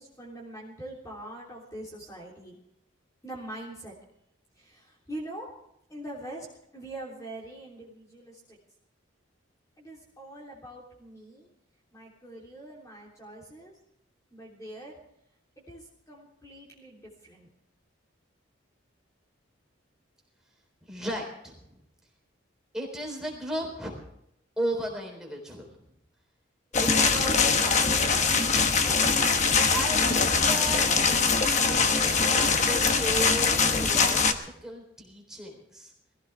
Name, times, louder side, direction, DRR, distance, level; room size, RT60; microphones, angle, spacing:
voice 1, 0.0-2.6 3.2-3.9 4.6-5.5 5.9-6.5 6.7-8.6 9.8-11.5 11.9-13.7 14.3-15.0 15.7-17.5, right 1 dB, 15° left, -4 dB, 3.2 m, -43 dB
voice 2, 20.8-21.6 22.7-24.0 24.6-25.7 26.8-28.2 29.7-35.9, right 1 dB, 5° right, -1 dB, 3.8 m, -35 dB
sound 1, 26.7-34.3, left 5 dB, 35° left, 1.1 m, -23 dB
22.0 x 15.5 x 3.5 m, 0.76 s
head